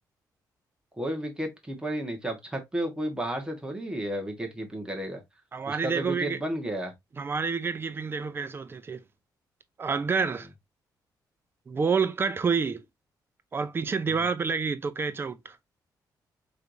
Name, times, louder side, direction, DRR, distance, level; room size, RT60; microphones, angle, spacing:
voice 1, 0.9-5.2 5.7-6.9 14.1-14.3, right 1 dB, 10° right, 1.3 m, -32 dB
voice 2, 5.5-6.4 7.2-9.0 9.8-10.5 11.7-12.8 13.5-15.6, right 5 dB, 30° right, 0.6 m, -28 dB
4.6 x 3.3 x 2.6 m
cardioid pair, 120°, 7 cm